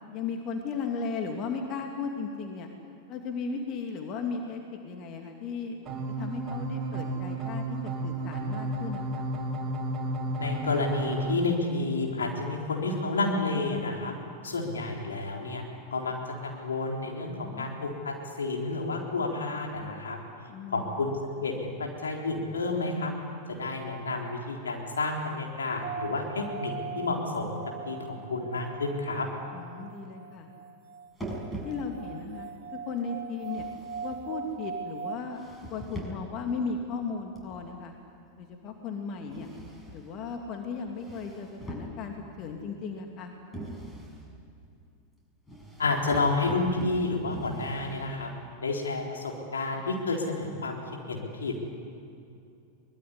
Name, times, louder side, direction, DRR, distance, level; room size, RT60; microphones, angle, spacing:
voice 1, 0.1-2.7 3.1-5.8 6.2-9.2 17.3-17.7 20.5-21.0 29.5-30.5 31.6-32.5 32.9-33.6 34.0-35.4 35.7-37.9 38.4-39.5 39.9-43.3, left 5 dB, 35° left, 3 dB, 2.4 m, -36 dB
sound 1, 5.9-11.3, right 1 dB, 20° right, 4.8 m, -32 dB
voice 2, 10.4-14.1 14.4-15.6 15.9-16.2 16.4-20.2 20.7-23.1 23.5-27.6 27.9-29.3 45.8-48.3 48.6-50.8 51.1-51.5, left 3 dB, 70° left, 0 dB, 3.9 m, -30 dB
sound 2, 25.8-35.2, right 6 dB, 50° right, 2.0 m, -41 dB
sound 3, 31.2-32.2 33.4-34.6 35.3-36.4 37.4-37.8 39.3-40.2 40.9-42.3 43.5-44.3 45.5-48.3, right 1 dB, 10° left, 6.6 m, -42 dB
23.5 x 21.0 x 9.8 m, 2.5 s
figure-of-eight pair, 90°, 0 cm